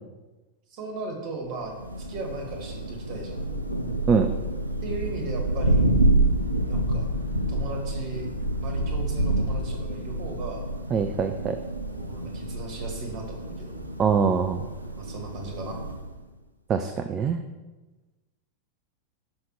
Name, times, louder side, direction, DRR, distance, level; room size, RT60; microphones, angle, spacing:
voice 1, 0.7-1.7 2.0-3.4 4.8-5.9 6.7-7.1 7.5-8.3 8.6-10.7 11.9-13.8 15.0-15.8, right 2 dB, 40° right, 2 dB, 1.6 m, -37 dB
Thunder, 1.6-16.2, right 1 dB, 85° right, 0.5 m, -28 dB
voice 2, 10.9-11.6 14.0-14.7 16.7-17.4, right 6 dB, 25° right, 7 dB, 0.4 m, -23 dB
5.8 x 5.3 x 4.7 m, 1.2 s
figure-of-eight pair, 90°, 0 cm